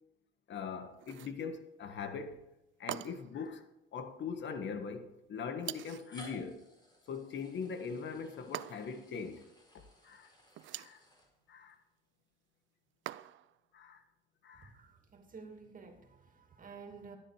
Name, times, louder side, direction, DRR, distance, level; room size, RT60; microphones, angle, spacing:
voice 1, 0.5-2.4 2.8-6.7 7.1-9.4 10.0-10.3 10.7-11.0 11.5-11.8 13.7-14.0 14.4-14.7, left 5 dB, 65° left, 1.5 m, -41 dB
sound 1, 1.0-1.4 2.9-3.4 5.6-6.1 8.5-9.1 10.5-11.0 13.1-13.6, right 14 dB, 75° right, 0.5 m, -43 dB
sound 2, 2.4-2.5 3.5-3.6 4.7-4.8 5.7-11.7, left 1 dB, 20° left, 4.2 m, -58 dB
voice 2, 14.5-17.2, right 5 dB, 45° right, 2.5 m, -52 dB
13.0 x 9.9 x 4.9 m
cardioid pair, 90°, 20 cm